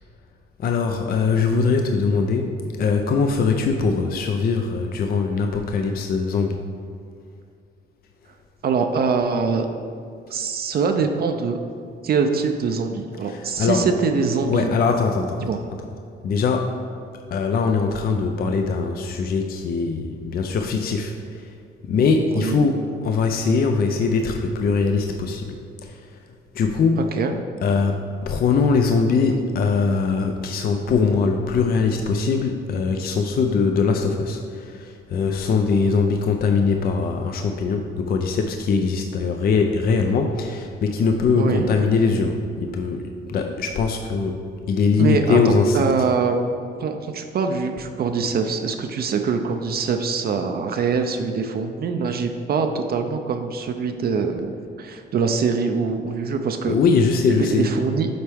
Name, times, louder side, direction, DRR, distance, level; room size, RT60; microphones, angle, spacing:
voice 1, 0.6-6.6 13.3-13.9 14.5-15.4 16.2-16.7 17.3-21.1 21.9-25.4 26.6-27.0 27.6-28.0 28.3-43.0 43.3-44.4 44.7-45.8 56.7-57.7, left 4 dB, 50° left, 4 dB, 0.5 m, -21 dB
voice 2, 8.6-9.7 10.3-11.6 12.0-14.7 15.4-15.6 22.4-22.6 27.1-27.4 41.3-41.7 45.0-46.4 46.8-54.5 54.8-56.8 57.3-58.1, right 5 dB, 50° right, 5 dB, 0.5 m, -23 dB
7.8 x 4.4 x 3.5 m, 2.4 s
cardioid pair, 90°, 20 cm